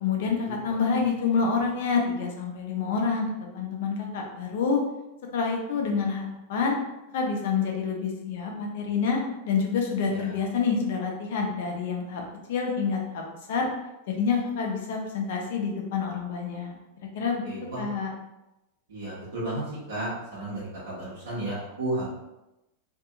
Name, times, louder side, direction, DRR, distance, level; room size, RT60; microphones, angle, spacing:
voice 1, 0.0-4.8 5.3-6.8 7.1-12.2 12.5-13.2 13.5-13.7 14.1-16.7 17.1-17.4 17.8-18.1, left 5 dB, 55° left, 1 dB, 0.6 m, -27 dB
voice 2, 17.4-17.8 18.9-19.6 19.9-22.1, right 1 dB, 65° right, -9 dB, 1.0 m, -33 dB
2.6 x 2.6 x 2.4 m, 0.93 s
figure-of-eight pair, 90°, 0 cm